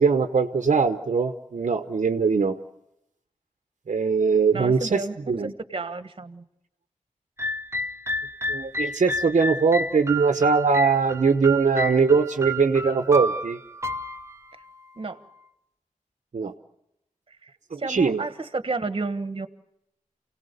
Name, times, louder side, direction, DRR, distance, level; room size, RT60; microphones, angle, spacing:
voice 1, 0.0-2.6 3.9-5.5 8.5-13.6 16.3-16.5 17.7-18.2, right 5 dB, 60° right, 7 dB, 1.0 m, -21 dB
voice 2, 4.5-5.4 5.7-6.4 15.0-15.2 17.3-17.5 17.8-19.5, right 3 dB, 40° right, 10 dB, 1.3 m, -31 dB
sound 1, 7.4-15.4, equal, 20° right, 0.8 m, -31 dB
29.0 x 18.0 x 6.7 m, 0.84 s
wide cardioid pair, 110°, 14 cm